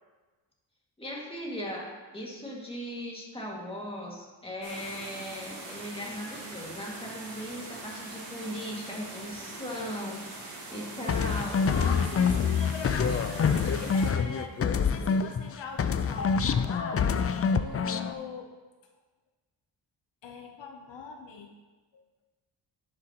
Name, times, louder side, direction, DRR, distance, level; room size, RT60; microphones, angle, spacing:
voice 1, 1.0-11.7, equal, 10° left, -3 dB, 2.1 m, -38 dB
sound 1, 4.6-14.1, right 2 dB, 80° right, 2.4 m, -42 dB
sound 2, 11.1-15.5 15.8-18.1, left 6 dB, 35° left, 0.4 m, -26 dB
voice 2, 11.6-17.1 17.5-18.5 20.2-21.5 21.9-22.0, left 5 dB, 70° left, 3 dB, 0.9 m, -41 dB
10.5 x 7.7 x 3.0 m, 1.3 s
cardioid pair, 85°, 46 cm